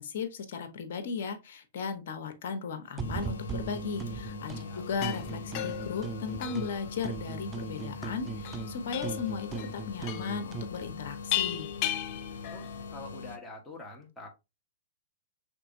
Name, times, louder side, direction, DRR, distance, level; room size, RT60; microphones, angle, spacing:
voice 1, 0.0-11.7, left 5 dB, 60° left, 1.1 m, -36 dB
sound 1, 3.0-13.4, left 4 dB, 80° left, 0.8 m, -42 dB
sound 2, 3.0-4.7 5.0-6.8 7.0-10.8, right 5 dB, 20° right, 0.4 m, -39 dB
sound 3, 4.8-12.9, left 12 dB, 45° left, 0.5 m, -37 dB
voice 2, 12.5-14.3, left 2 dB, 10° left, 1.6 m, -46 dB
5.9 x 3.3 x 2.7 m
hypercardioid pair, 125°, 0 cm